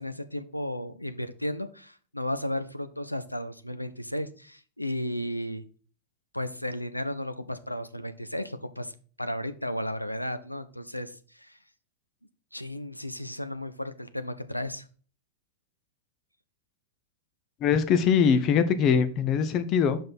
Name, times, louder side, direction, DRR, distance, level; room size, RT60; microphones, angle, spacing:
voice 1, 0.0-5.6 6.3-8.9 9.2-11.6 12.5-14.9, left 1 dB, 90° left, 0.5 m, -34 dB
voice 2, 17.6-20.0, left 7 dB, 35° left, 0.7 m, -22 dB
5.5 x 5.3 x 4.3 m
figure-of-eight pair, 90°, 0 cm